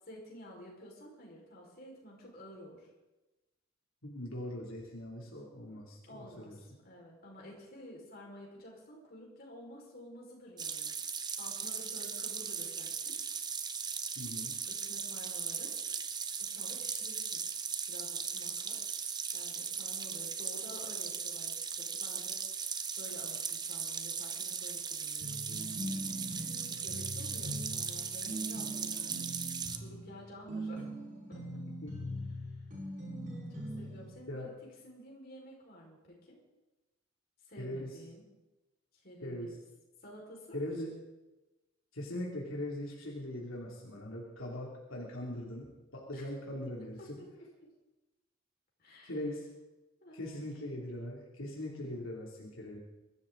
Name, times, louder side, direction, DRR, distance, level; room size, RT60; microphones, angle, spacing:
voice 1, 0.0-2.9 6.0-13.2 14.7-15.7 16.4-17.4 17.9-25.4 26.6-29.3 29.7-30.9 31.3-31.6 32.5-32.6 33.5-34.5 34.8-36.4 37.4-38.2 38.9-39.6 40.0-40.6 46.1-46.4 47.0-47.5 48.8-49.2 50.0-50.5, equal, 50° left, -2 dB, 5.0 m, -51 dB
voice 2, 4.0-6.8 14.2-14.5 27.5-27.6 31.8-32.0 34.3-34.5 37.6-38.0 39.2-39.6 40.5-41.0 41.9-47.2 49.0-49.5 50.1-52.8, left 1 dB, 85° left, -3 dB, 2.9 m, -41 dB
sound 1, 10.6-29.8, right 6 dB, 20° right, 0.8 m, -38 dB
sound 2, 25.2-34.1, equal, 45° right, 6.3 m, -41 dB
23.0 x 13.0 x 3.9 m, 1.1 s
head